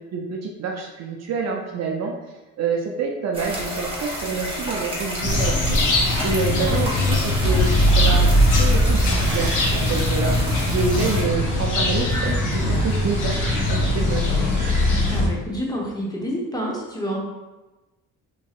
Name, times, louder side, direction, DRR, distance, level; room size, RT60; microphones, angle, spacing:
voice 1, 0.1-2.1 2.6-5.8 6.2-13.4 13.7-14.4, right 4 dB, 50° right, 1 dB, 0.5 m, -27 dB
sound 1, 3.3-11.2, equal, 15° right, 1.2 m, -30 dB
sound 2, 5.2-15.3, left 1 dB, 60° left, 0.7 m, -20 dB
sound 3, 6.3-15.2, right 2 dB, 70° right, 0.9 m, -39 dB
voice 2, 15.1-17.2, equal, 10° left, -3 dB, 0.7 m, -28 dB
3.0 x 2.6 x 2.3 m, 1.1 s
cardioid pair, 80°, 34 cm